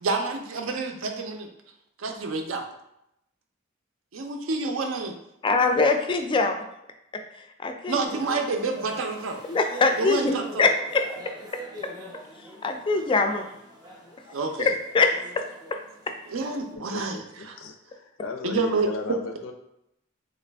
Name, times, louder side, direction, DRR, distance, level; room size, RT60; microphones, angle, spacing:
voice 1, 0.0-1.5 2.0-2.6 4.1-5.1 7.9-9.4 10.0-10.7 14.3-14.7 16.3-17.2 17.4-17.6 18.4-18.9, right 3 dB, 80° right, 4 dB, 0.5 m, -28 dB
voice 2, 5.4-6.6 7.4-8.0 9.5-11.0 12.6-13.5 14.6-15.1 15.4-15.5, left 3 dB, 25° left, 5 dB, 0.3 m, -23 dB
sound 1, 8.0-16.8, equal, 20° right, 0.6 m, -44 dB
voice 3, 16.8-19.5, left 3 dB, 90° left, 6 dB, 0.5 m, -36 dB
3.2 x 2.4 x 3.4 m, 0.81 s
head